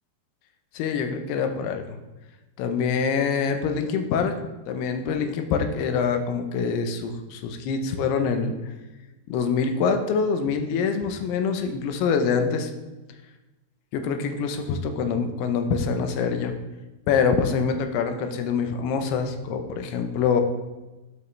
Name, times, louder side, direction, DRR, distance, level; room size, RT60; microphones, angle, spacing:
voice 1, 0.7-1.8 2.6-4.3 4.7-8.5 9.3-12.7 13.9-16.6 17.1-20.4, left 5 dB, 85° left, 6 dB, 2.8 m, -25 dB
13.5 x 5.4 x 3.2 m, 1.1 s
omnidirectional pair, 4.6 m